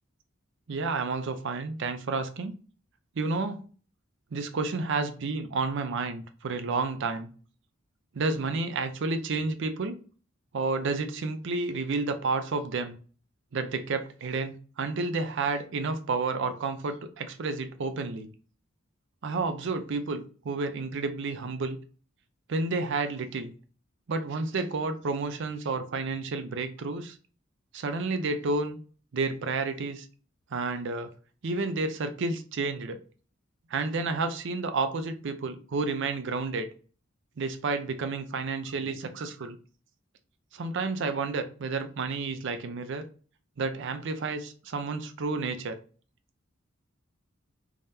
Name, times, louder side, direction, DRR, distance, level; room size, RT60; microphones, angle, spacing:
voice 1, 0.7-2.6 3.2-3.6 4.3-7.3 8.1-10.0 10.5-13.0 13.5-18.3 19.2-21.8 22.5-23.5 24.1-27.2 27.7-28.8 29.1-30.1 30.5-31.1 31.4-33.0 33.7-36.7 37.4-39.6 40.5-43.0 43.6-45.8, right 3 dB, 65° right, 9 dB, 0.5 m, -30 dB
3.5 x 2.7 x 3.3 m, 0.39 s
head